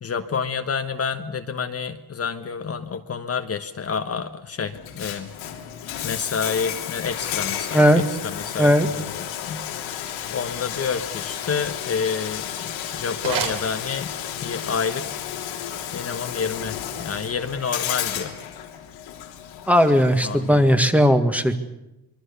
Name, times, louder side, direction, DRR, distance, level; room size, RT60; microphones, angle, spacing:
voice 1, 0.0-5.3 6.0-9.6 10.3-14.1 14.4-15.1 15.9-18.3 20.2-20.9, left 6 dB, 35° left, 7 dB, 1.2 m, -29 dB
Bathtub (filling or washing), 4.7-20.7, left 10 dB, 85° left, 3.2 m, -32 dB
sound 1, 13.0-14.4, right 7 dB, 60° right, 4.1 m, -32 dB
voice 2, 19.7-21.6, equal, 5° right, 8 dB, 1.6 m, -17 dB
25.0 x 23.0 x 6.9 m, 0.95 s
cardioid pair, 125°, 44 cm